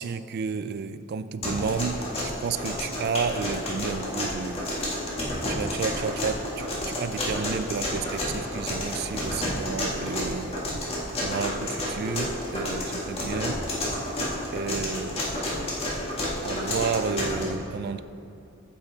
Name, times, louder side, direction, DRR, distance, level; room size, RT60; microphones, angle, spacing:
voice 1, 0.0-4.7 5.5-10.5 11.2-13.7 14.5-15.4 16.4-18.0, right 5 dB, 50° right, 13 dB, 0.3 m, -31 dB
sound 1, 1.4-17.4, left 1 dB, 30° left, 1.8 m, -30 dB
14.0 x 5.7 x 4.0 m, 2.6 s
head